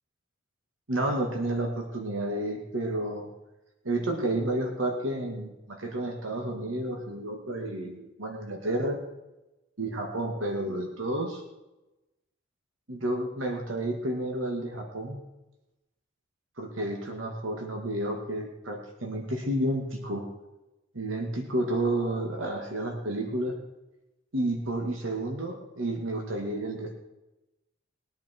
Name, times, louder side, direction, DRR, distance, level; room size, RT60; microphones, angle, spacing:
voice 1, 0.9-3.3 3.8-9.0 9.8-11.4 12.9-15.2 16.6-20.3 20.9-23.6 24.3-26.9, right 1 dB, 90° right, 1 dB, 2.3 m, -31 dB
21.0 x 10.5 x 4.7 m, 1.0 s
head